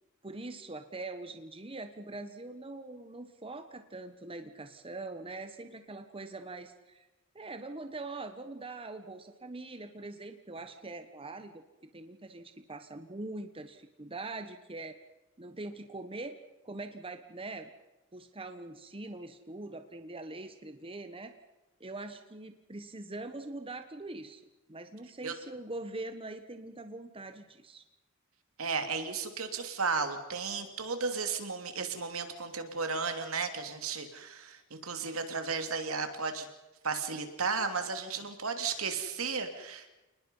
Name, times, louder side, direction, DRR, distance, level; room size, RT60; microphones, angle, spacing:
voice 1, 0.2-7.1 7.3-15.0 15.4-16.4 16.6-17.7 18.1-21.4 21.8-27.8, right 2 dB, 25° right, 8 dB, 1.2 m, -43 dB
voice 2, 28.6-36.5 36.8-39.9, right 5 dB, 75° right, 6 dB, 3.0 m, -34 dB
29.0 x 20.0 x 5.6 m, 1.0 s
head